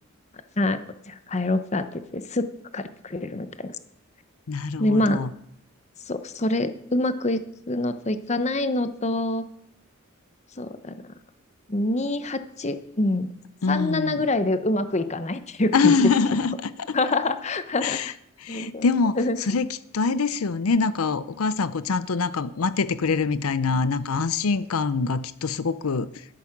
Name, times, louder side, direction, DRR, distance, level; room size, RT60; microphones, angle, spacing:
voice 1, 1.1-2.5 2.7-3.7 4.8-5.2 6.1-9.4 10.6-11.1 11.7-13.3 13.7-16.1 16.9-18.0 18.5-18.9 19.1-19.4, left 2 dB, 30° left, 11 dB, 0.8 m, -26 dB
voice 2, 4.5-5.3 13.6-14.3 15.7-17.1 17.8-18.1 18.4-19.7 19.9-26.2, left 4 dB, 85° left, 15 dB, 0.6 m, -24 dB
12.5 x 11.0 x 5.9 m, 0.72 s
head